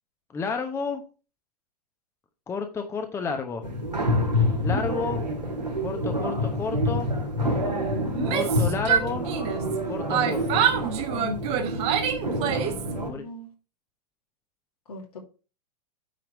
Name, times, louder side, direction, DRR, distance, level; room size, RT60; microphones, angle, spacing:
voice 1, 0.3-1.0 2.5-3.6 4.6-5.2 5.8-7.1 8.3-9.3 9.9-10.7 13.1-13.3, left 5 dB, 10° left, 6 dB, 0.9 m, -31 dB
sound 1, 3.6-13.1, left 1 dB, 85° right, 2.2 m, -27 dB
voice 2, 8.0-8.4 12.4-13.5 14.9-15.2, equal, 65° left, 1 dB, 2.5 m, -41 dB
Yell, 8.1-9.8 10.1-12.9, right 9 dB, 30° right, 1.2 m, -26 dB
9.3 x 4.6 x 4.6 m, 0.33 s
figure-of-eight pair, 100°, 21 cm